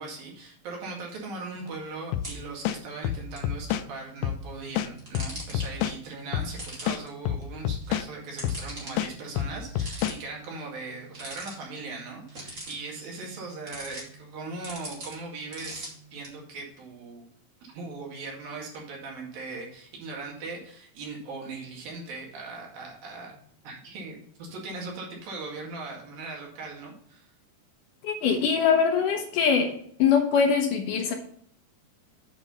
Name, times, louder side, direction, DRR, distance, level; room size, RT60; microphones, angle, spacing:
voice 1, 0.0-17.3 17.7-23.4 23.6-27.2, right 3 dB, 70° right, -1 dB, 3.8 m, -39 dB
sound 1, 1.5-16.3, right 1 dB, 20° right, 2.4 m, -45 dB
sound 2, 2.1-2.3 2.6-3.9 4.2-4.4 4.8-6.0 6.3-6.5 6.9-8.1 8.4-8.6 9.0-10.2, left 11 dB, 80° left, 2.0 m, -28 dB
voice 2, 28.0-29.7 30.0-31.1, left 6 dB, 65° left, 2 dB, 2.4 m, -22 dB
9.1 x 4.9 x 5.5 m, 0.62 s
omnidirectional pair, 4.4 m